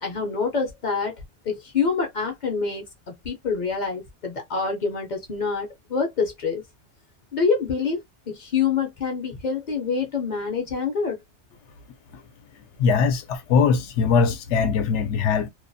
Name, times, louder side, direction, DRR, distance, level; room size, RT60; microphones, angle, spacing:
voice 1, 0.0-1.1 1.4-6.6 7.3-11.2, left 5 dB, 50° left, 0.6 m, -26 dB
voice 2, 12.8-15.5, left 5 dB, 80° left, 0.9 m, -21 dB
2.3 x 2.1 x 2.5 m
omnidirectional pair, 1.2 m